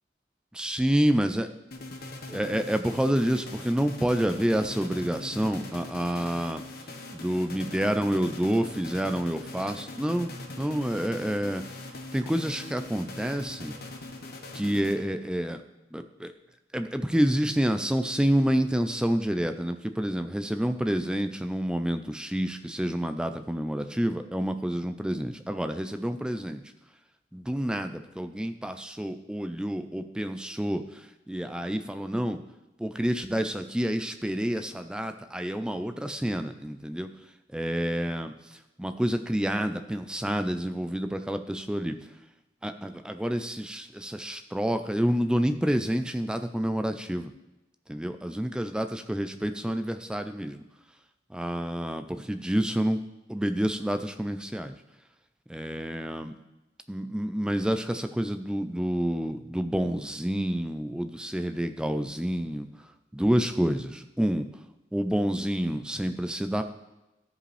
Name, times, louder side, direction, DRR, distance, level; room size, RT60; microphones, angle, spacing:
voice 1, 0.5-1.5 2.3-6.6 7.1-11.6 12.1-13.8 14.5-15.6 15.9-16.3 16.7-26.6 27.3-32.4 32.8-37.1 37.5-38.3 38.8-42.0 42.6-47.3 47.9-50.6 51.3-53.0 53.3-54.7 55.5-56.3 56.9-62.7 63.1-64.5 64.9-66.6, equal, 5° right, 8 dB, 0.4 m, -28 dB
sound 1, 1.7-15.3, left 2 dB, 55° left, 1.1 m, -41 dB
13.5 x 5.1 x 3.3 m, 0.99 s
head